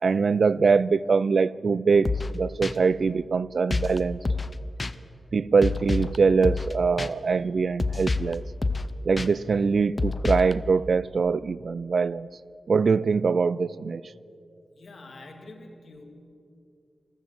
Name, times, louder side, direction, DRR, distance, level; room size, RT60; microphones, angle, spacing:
voice 1, 0.0-4.2 5.3-8.4 9.1-12.3 12.7-14.0, right 5 dB, 60° right, 19 dB, 0.3 m, -23 dB
sound 1, 2.0-2.3 2.6-2.7 3.7-4.0 4.2-4.5 4.8-4.9 5.6-6.2 6.4-6.7 7.0-7.1 7.8-8.3 8.6-8.9 9.2-9.3 10.0-10.5, left 3 dB, 30° left, 0.5 m, -27 dB
voice 2, 14.6-16.0, left 2 dB, 60° left, 3 dB, 2.1 m, -46 dB
14.5 x 12.5 x 7.7 m, 2.6 s
wide cardioid pair, 145°, 0 cm